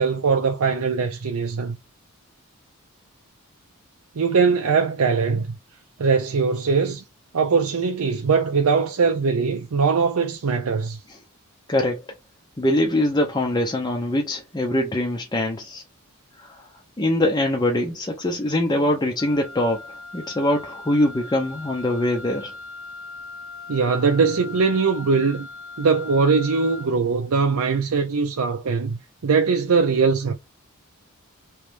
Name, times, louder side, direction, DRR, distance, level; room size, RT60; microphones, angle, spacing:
voice 1, 0.0-1.8 4.2-5.5 6.0-7.0 7.3-11.0 23.7-25.5 25.8-30.3, right 5 dB, 75° right, 0.5 m, -21 dB
voice 2, 11.7-12.0 12.6-15.8 16.4-16.7 17.0-22.5, left 1 dB, 20° left, 0.6 m, -23 dB
Wind instrument woodwind instrument, 19.2-27.0, left 3 dB, 70° left, 0.7 m, -39 dB
3.1 x 3.1 x 3.3 m
head